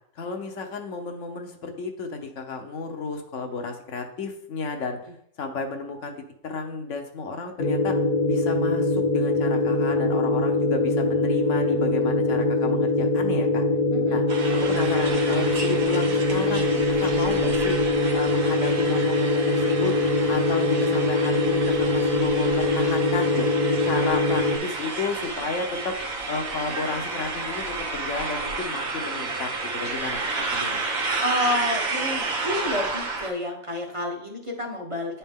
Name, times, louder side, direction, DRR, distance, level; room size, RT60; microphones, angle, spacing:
voice 1, 0.2-5.0 5.4-6.1 6.4-8.0 8.3-13.7 14.1-14.2 14.5-17.8 18.1-20.0 20.3-23.5 23.8-26.0 26.3-30.8, left 4 dB, 65° left, 4 dB, 1.2 m, -32 dB
sound 1, 7.6-24.6, left 2 dB, 45° left, 0.9 m, -23 dB
voice 2, 13.9-14.2 31.2-35.2, left 1 dB, 30° right, 0 dB, 0.9 m, -29 dB
sound 2, 14.3-33.3, right 3 dB, 85° right, 1.5 m, -31 dB
9.7 x 4.3 x 3.6 m, 0.71 s
omnidirectional pair, 1.4 m